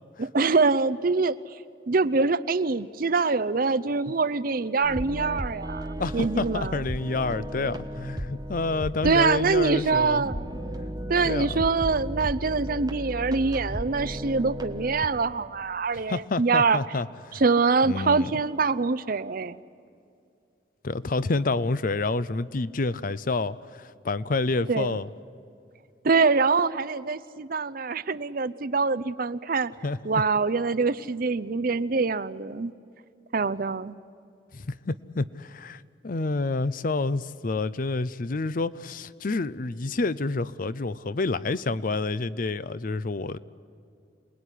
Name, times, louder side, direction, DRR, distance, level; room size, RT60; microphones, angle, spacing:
voice 1, 0.2-1.4 1.9-6.8 9.0-16.8 17.4-19.6 24.7-25.0 26.0-29.7 30.0-32.7 33.3-34.0, right 4 dB, 50° right, 13 dB, 0.6 m, -24 dB
sound 1, 4.8-15.1, equal, 20° right, 1.3 m, -35 dB
voice 2, 6.0-10.2 11.2-11.6 15.9-17.4 17.9-18.3 20.8-25.1 29.8-30.0 34.5-43.4, left 3 dB, 45° left, 17 dB, 0.6 m, -28 dB
27.5 x 19.5 x 10.0 m, 2.4 s
head